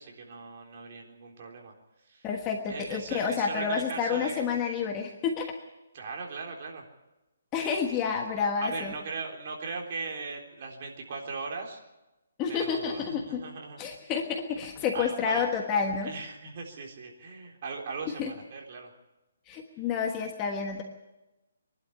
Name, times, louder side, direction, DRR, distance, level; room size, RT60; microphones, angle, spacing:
voice 1, 0.0-1.7 2.0-2.3 2.7-4.5 5.9-6.9 8.6-11.8 12.5-13.8 14.9-15.5 16.0-18.9, right 4 dB, 40° right, 1 dB, 3.7 m, -39 dB
voice 2, 2.2-5.5 7.5-8.9 12.4-13.4 13.8-16.1 18.2-18.3 19.5-20.8, left 6 dB, 15° left, 3 dB, 1.3 m, -29 dB
24.0 x 12.0 x 9.8 m, 1.0 s
hypercardioid pair, 170°, 0 cm